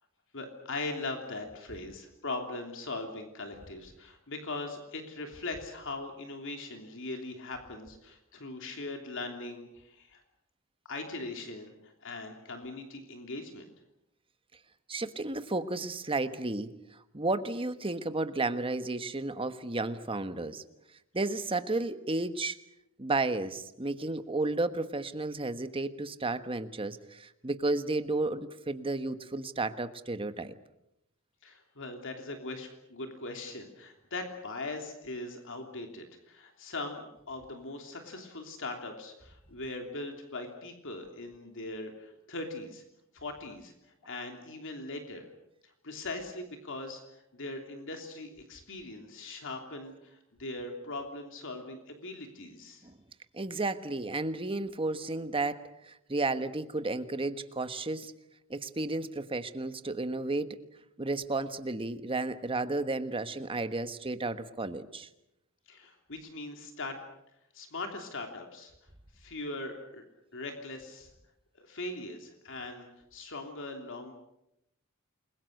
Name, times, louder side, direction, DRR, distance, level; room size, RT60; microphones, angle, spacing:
voice 1, 0.3-10.2 10.9-13.7 31.4-42.8 43.1-43.7 44.0-45.3 45.6-52.8 65.7-67.0 67.5-68.7 69.2-70.1 70.3-71.1 71.5-74.1, left 2 dB, 60° left, 4 dB, 3.1 m, -40 dB
voice 2, 14.9-20.6 21.1-22.6 23.0-30.5 52.8-52.9 53.3-58.1 58.5-60.6 61.0-65.1, right 2 dB, 25° right, 10 dB, 1.3 m, -33 dB
29.0 x 22.0 x 6.6 m, 0.83 s
head